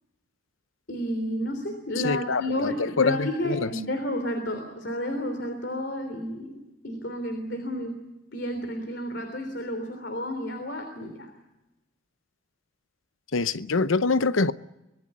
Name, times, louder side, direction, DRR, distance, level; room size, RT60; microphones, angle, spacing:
voice 1, 0.9-6.6 6.8-8.0 8.3-11.3, left 1 dB, 55° left, 3.3 m, -31 dB
voice 2, 2.0-3.7 13.3-14.5, left 4 dB, 80° left, 0.8 m, -25 dB
25.0 x 19.5 x 8.6 m
head